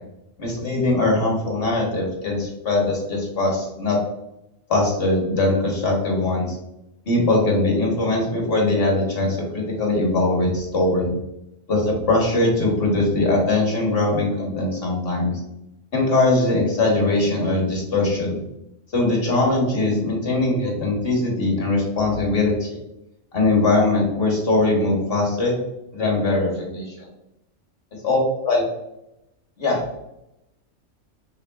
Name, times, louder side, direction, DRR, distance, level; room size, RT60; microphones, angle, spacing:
voice 1, 0.4-4.0 4.7-6.6 7.0-11.1 11.7-15.3 15.9-18.4 18.9-22.8 23.3-25.6 25.9-27.1 28.0-28.2 28.4-28.6 29.6-29.8, left 2 dB, 50° left, -1 dB, 1.4 m, -21 dB
5.6 x 3.4 x 2.3 m, 0.86 s
omnidirectional pair, 1.4 m